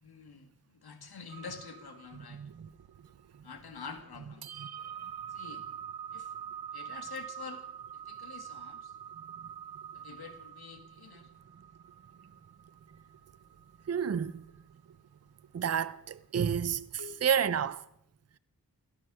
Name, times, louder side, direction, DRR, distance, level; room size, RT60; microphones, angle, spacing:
voice 1, 0.0-2.4 3.4-4.4 5.3-5.6 6.1-6.3 6.7-7.6 7.9-8.9 9.9-11.3 17.0-17.2, left 6 dB, 85° left, 2.0 m, -47 dB
sound 1, 1.3-17.7, right 9 dB, 85° right, 0.8 m, -46 dB
voice 2, 2.3-2.7 13.9-14.4 15.5-16.9 17.2-17.8, right 8 dB, 45° right, 0.6 m, -30 dB
17.0 x 13.0 x 6.2 m
wide cardioid pair, 135°, 37 cm